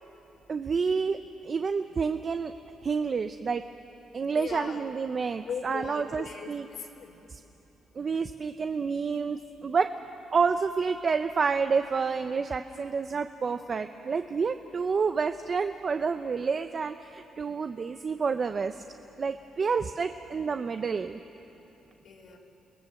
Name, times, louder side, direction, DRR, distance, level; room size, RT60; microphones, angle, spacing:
voice 1, 0.5-1.2 1.4-2.5 2.8-3.6 4.1-6.7 7.3-7.4 7.9-9.9 10.3-18.8 19.2-21.2, right 5 dB, 40° right, 8 dB, 0.8 m, -29 dB
voice 2, 4.3-4.8 5.4-7.1 22.0-22.4, left 6 dB, 70° left, -3 dB, 3.4 m, -39 dB
29.5 x 19.0 x 7.7 m, 3.0 s
cardioid pair, 90°, 0 cm